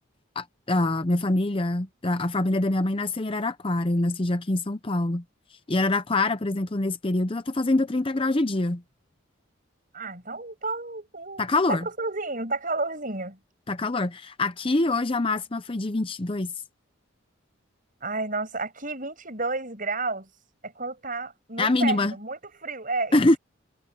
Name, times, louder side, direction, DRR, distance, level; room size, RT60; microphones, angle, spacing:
voice 1, 0.4-5.2 5.7-8.8 11.4-11.9 13.7-16.5 21.6-22.1 23.1-23.4, left 2 dB, 25° left, 0.6 m, -25 dB
voice 2, 9.9-13.4 18.0-20.3 20.6-23.3, right 3 dB, 40° right, 7.6 m, -31 dB
head